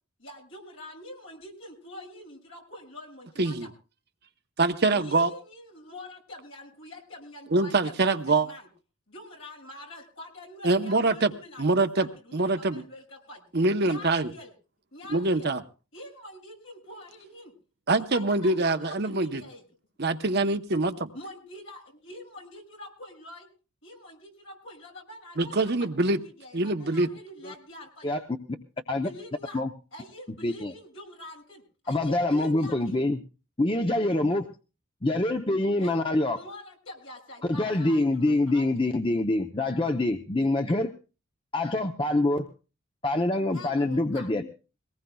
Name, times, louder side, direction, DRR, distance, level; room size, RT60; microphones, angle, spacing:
voice 1, 0.2-3.7 5.0-8.7 9.1-13.4 13.8-14.5 14.9-15.5 15.9-17.5 18.1-19.6 21.1-23.5 23.8-25.5 25.8-28.1 28.9-29.6 29.9-33.0 35.8-38.6 43.5-44.3, left 1 dB, 65° left, 6.6 m, -45 dB
voice 2, 4.6-5.3 7.5-8.5 10.6-11.3 11.6-12.1 12.3-12.8 13.5-14.3 15.1-15.6 17.9-19.4 20.0-21.1 25.4-26.2 26.5-27.1, right 2 dB, 50° right, 0.8 m, -24 dB
voice 3, 31.9-33.2 33.6-34.5 35.0-36.4 37.5-40.9 41.5-42.5 43.0-44.4, left 2 dB, 25° left, 0.7 m, -25 dB
22.5 x 19.0 x 2.3 m
head